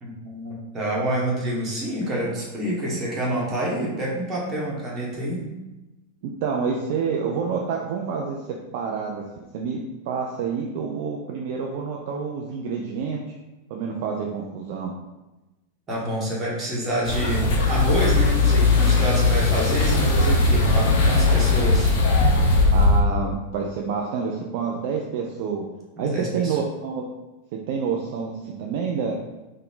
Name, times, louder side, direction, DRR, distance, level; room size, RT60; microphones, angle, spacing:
voice 1, 0.0-5.5 15.9-21.9 26.0-26.6, right 1 dB, 25° right, -5 dB, 1.2 m, -27 dB
voice 2, 6.2-8.4 8.7-9.2 9.5-13.2 13.7-14.9 22.7-25.6 26.0-27.0 27.7-29.2, right 5 dB, 50° right, 0 dB, 0.4 m, -28 dB
sound 1, 17.0-23.0, left 3 dB, 45° left, 0.6 m, -19 dB
3.7 x 2.1 x 3.8 m, 1.0 s
figure-of-eight pair, 90°, 0 cm